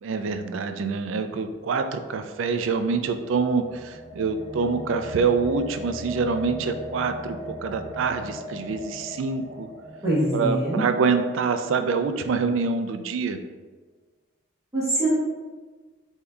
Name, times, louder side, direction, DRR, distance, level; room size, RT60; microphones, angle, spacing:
voice 1, 0.0-9.7 10.3-13.4, right 5 dB, 70° right, 8 dB, 0.3 m, -26 dB
sound 1, 2.7-12.4, equal, 45° right, 1.0 m, -40 dB
voice 2, 10.0-10.9 14.7-15.1, right 1 dB, 15° right, -8 dB, 0.9 m, -23 dB
6.6 x 2.7 x 2.3 m, 1.3 s
head